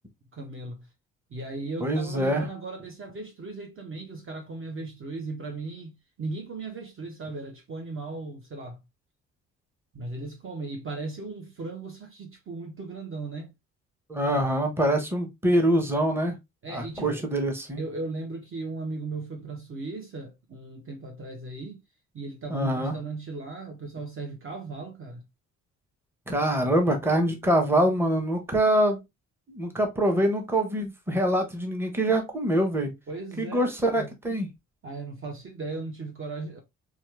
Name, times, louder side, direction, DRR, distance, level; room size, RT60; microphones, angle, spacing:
voice 1, 0.3-0.9 1.3-8.8 9.9-13.5 16.6-17.4 17.8-21.8 22.1-25.2 33.1-34.1 34.8-36.6, right 3 dB, 30° right, 0.9 m, -37 dB
voice 2, 1.8-2.5 14.1-16.4 16.7-17.8 22.5-23.0 26.3-29.0 29.5-32.9 33.4-34.5, right 1 dB, 5° right, 1.1 m, -24 dB
4.3 x 2.5 x 3.1 m
figure-of-eight pair, 40°, 40 cm